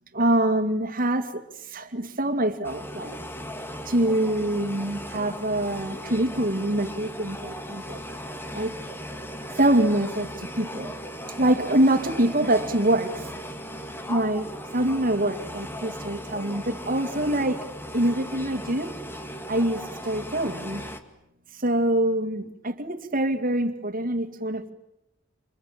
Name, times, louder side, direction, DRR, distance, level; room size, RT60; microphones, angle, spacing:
voice 1, 0.1-1.4 1.7-3.1 3.9-8.0 8.5-8.7 9.6-10.9 11.4-13.3 14.1-17.7 17.9-18.9 19.5-20.8 21.6-24.7, right 1 dB, 45° right, 9 dB, 2.3 m, -25 dB
sound 1, 2.6-21.0, equal, 10° left, 2.0 m, -37 dB
29.0 x 27.0 x 7.5 m, 0.85 s
head